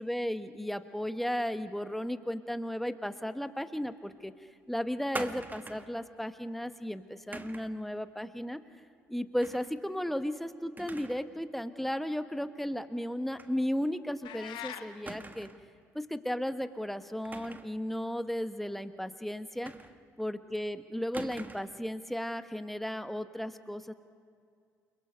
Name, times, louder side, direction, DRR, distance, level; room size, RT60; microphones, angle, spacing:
voice 1, 0.0-4.3 4.7-8.6 9.1-15.5 15.9-19.7 20.2-23.9, equal, ahead, 10 dB, 1.3 m, -35 dB
sound 1, 5.1-6.0 7.3-7.8 9.4-9.7 10.1-10.2 10.8-11.3 11.6-11.7 13.4-13.6 13.9-14.0 15.1-15.7 17.2-17.8 19.7-20.2 21.1-21.8, right 2 dB, 20° right, 1.4 m, -43 dB
sound 2, 14.2-14.9, left 10 dB, 60° left, 1.4 m, -41 dB
29.5 x 21.5 x 5.3 m, 2.3 s
figure-of-eight pair, 50°, 9 cm